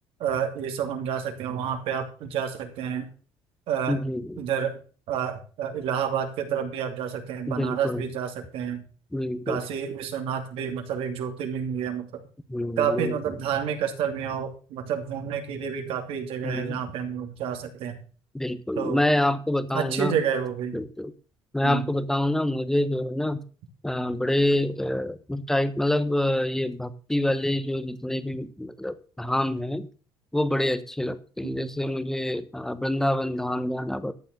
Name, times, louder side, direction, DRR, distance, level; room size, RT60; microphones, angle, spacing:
voice 1, 0.2-3.1 3.7-4.0 4.4-4.8 5.1-8.8 9.5-12.2 12.8-18.0 18.8-19.0 19.7-20.8 21.6-21.9 31.4-31.7, right 8 dB, 65° right, 5 dB, 2.7 m, -29 dB
voice 2, 3.9-4.4 7.5-8.1 9.1-9.6 12.5-13.1 16.4-16.8 18.3-20.2 20.7-21.1 21.5-23.4 23.8-29.9 30.3-34.1, left 1 dB, 5° left, 13 dB, 1.0 m, -26 dB
13.0 x 7.1 x 6.7 m, 0.38 s
cardioid pair, 145°, 10 cm